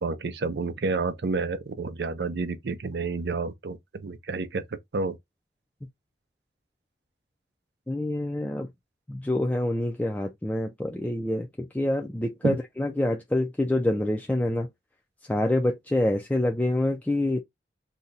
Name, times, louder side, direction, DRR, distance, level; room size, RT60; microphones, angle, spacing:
voice 1, 0.0-4.6 4.9-5.2 12.4-12.6, right 4 dB, 70° right, 0.5 m, -29 dB
voice 2, 7.9-8.7 9.1-14.7 15.3-17.4, left 1 dB, 10° left, 0.3 m, -26 dB
2.7 x 2.2 x 3.8 m
head